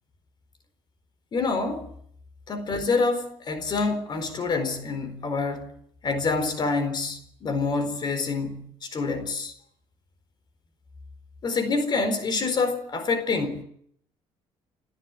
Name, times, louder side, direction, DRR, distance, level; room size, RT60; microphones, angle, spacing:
voice 1, 1.3-1.8 2.5-5.7 6.0-9.5 11.4-13.6, left 4 dB, 45° left, 4.2 m, -27 dB
29.5 x 13.5 x 8.9 m
cardioid pair, 100°, 10 cm